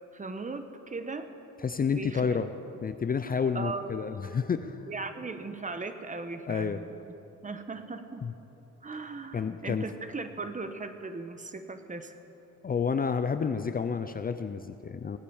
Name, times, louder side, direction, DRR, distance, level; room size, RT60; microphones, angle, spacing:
voice 1, 0.1-1.3 1.9-2.4 3.5-3.9 4.9-7.0 7.4-8.2 8.8-12.1, right 3 dB, 25° right, 8 dB, 1.1 m, -38 dB
voice 2, 1.6-2.5 2.8-4.8 6.5-6.8 8.2-8.3 9.3-9.9 12.6-15.2, left 6 dB, 30° left, 10 dB, 0.6 m, -30 dB
16.5 x 9.5 x 7.2 m, 3.0 s
cardioid pair, 90°, 30 cm